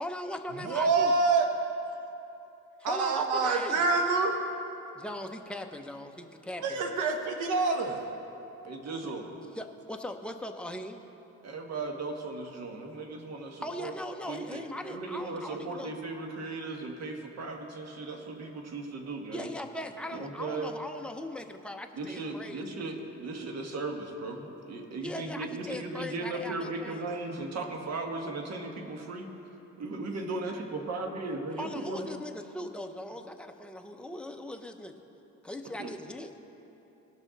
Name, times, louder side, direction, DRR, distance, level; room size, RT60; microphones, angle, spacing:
voice 1, 0.0-1.1 2.8-3.9 5.0-6.8 9.5-11.0 13.6-15.9 19.3-22.6 25.0-27.1 31.6-34.9 35.4-36.3, left 1 dB, 5° left, 4 dB, 0.7 m, -39 dB
voice 2, 0.6-1.4 2.8-4.3 6.6-8.0, right 4 dB, 80° right, 4 dB, 1.2 m, -26 dB
voice 3, 8.6-9.3 11.4-13.9 14.3-19.5 20.1-20.7 21.9-29.3 29.8-32.1 35.8-35.9, right 3 dB, 60° right, 3 dB, 1.4 m, -37 dB
18.5 x 6.3 x 4.0 m, 3.0 s
cardioid pair, 90°, 30 cm